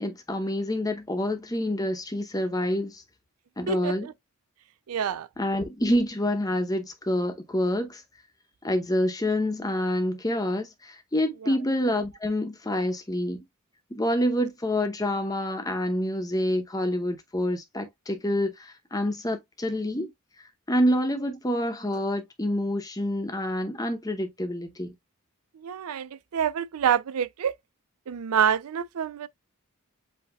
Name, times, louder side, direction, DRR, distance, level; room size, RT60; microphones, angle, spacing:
voice 1, 0.0-3.0 3.6-4.1 5.4-8.0 8.6-13.4 13.9-20.1 20.4-24.9, left 1 dB, 15° left, 0.8 m, -27 dB
voice 2, 3.7-4.1 4.9-5.3 25.6-27.5 28.1-29.3, right 8 dB, 80° right, 0.4 m, -27 dB
7.8 x 2.8 x 2.3 m
head